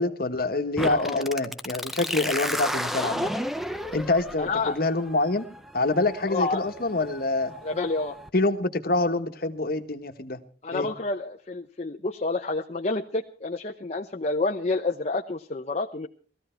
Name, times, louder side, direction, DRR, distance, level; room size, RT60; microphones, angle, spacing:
voice 1, 0.0-3.3 3.9-5.5 5.7-7.5 8.3-10.4 10.7-10.9, left 2 dB, 55° left, 7 dB, 1.3 m, -26 dB
voice 2, 0.8-1.2 2.3-2.5 4.4-4.8 6.3-6.6 7.6-8.1 10.6-16.1, left 3 dB, 40° left, 2 dB, 0.8 m, -29 dB
sound 1, 0.8-8.3, equal, ahead, 0.7 m, -33 dB
19.5 x 14.5 x 4.5 m, 0.41 s
head